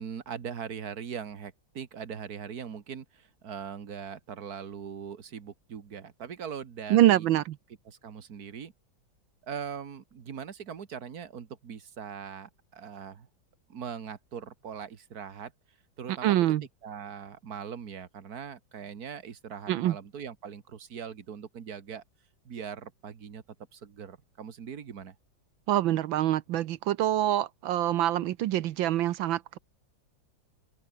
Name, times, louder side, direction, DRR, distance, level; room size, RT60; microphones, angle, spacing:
voice 1, 0.0-7.3 7.9-8.7 9.4-13.3 13.7-15.5 16.0-16.4 16.8-22.0 22.5-23.4 23.7-25.2, right 7 dB, 50° right, 2.0 m, -41 dB
voice 2, 6.9-7.4 16.2-16.6 19.7-20.0 25.7-29.6, right 13 dB, 80° right, 1.5 m, -25 dB
open air
omnidirectional pair, 2.1 m